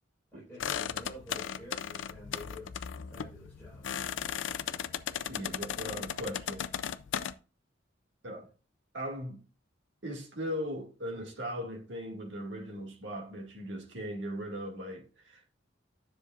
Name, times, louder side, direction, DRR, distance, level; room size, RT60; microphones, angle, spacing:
voice 1, 0.3-2.8 3.1-4.5, left 1 dB, 10° left, 4.5 m, -49 dB
sound 1, 0.6-7.3, left 8 dB, 75° left, 0.5 m, -36 dB
voice 2, 5.3-6.6 8.2-8.5 8.9-9.4 10.0-15.5, equal, 65° right, 2.0 m, -39 dB
10.0 x 6.6 x 2.4 m
head